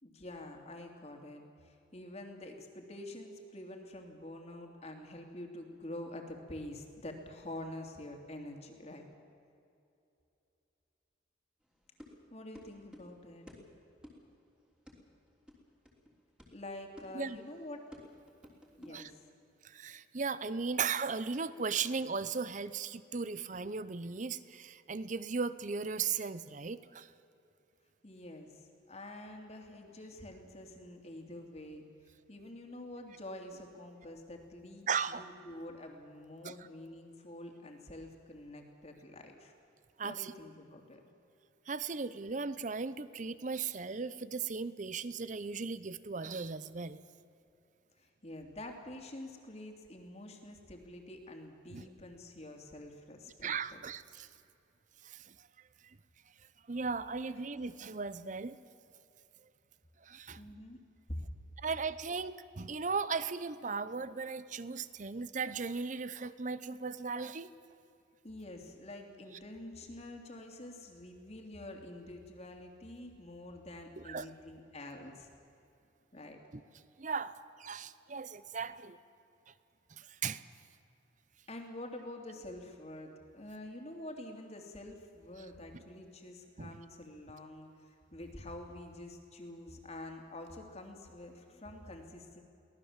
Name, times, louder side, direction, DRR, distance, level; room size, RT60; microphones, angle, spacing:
voice 1, 0.0-9.0 12.3-13.5 16.5-17.8 18.8-19.3 28.0-31.8 32.3-39.5 40.0-41.0 48.0-53.8 60.3-60.8 61.1-61.2 68.2-75.3 76.1-76.4 81.5-92.4, left 1 dB, 35° left, 3 dB, 2.8 m, -47 dB
sound 1, 11.6-19.2, left 1 dB, 5° right, 3.3 m, -55 dB
voice 2, 19.6-27.1 34.9-35.2 36.4-36.5 40.0-40.3 41.7-47.0 51.7-51.9 53.4-54.3 55.0-55.3 55.8-56.0 56.7-58.6 60.0-60.4 61.6-67.5 74.0-74.3 77.0-77.3 77.6-79.0 79.9-80.4 86.6-86.8, right 5 dB, 40° right, 15 dB, 0.7 m, -37 dB
23.5 x 18.0 x 7.4 m, 2.7 s
head